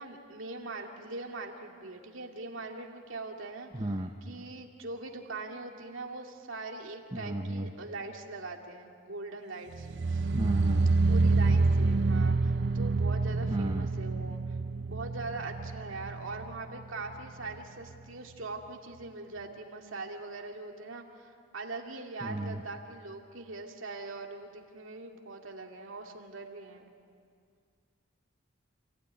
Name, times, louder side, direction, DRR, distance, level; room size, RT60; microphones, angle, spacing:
voice 1, 0.0-10.3 11.1-26.9, right 3 dB, 80° right, 2 dB, 2.3 m, -42 dB
voice 2, 3.7-4.1 7.1-7.6 10.3-10.8 13.5-13.8 22.2-22.5, right 1 dB, 25° right, 3 dB, 1.0 m, -33 dB
sound 1, 9.7-16.8 17.1-17.6 17.9-18.0, right 3 dB, 60° right, 0.5 m, -27 dB
28.0 x 16.0 x 9.7 m, 2.2 s
head